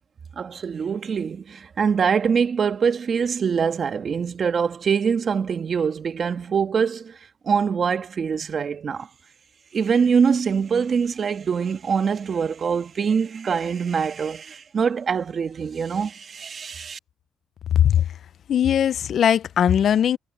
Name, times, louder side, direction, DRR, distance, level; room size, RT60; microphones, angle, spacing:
voice 1, 0.4-7.2 7.4-9.1 9.7-17.0, right 6 dB, 45° right, 1.7 m, -24 dB
voice 2, 18.5-20.2, left 9 dB, 60° left, 0.6 m, -19 dB
cardioid pair, 90°, 0 cm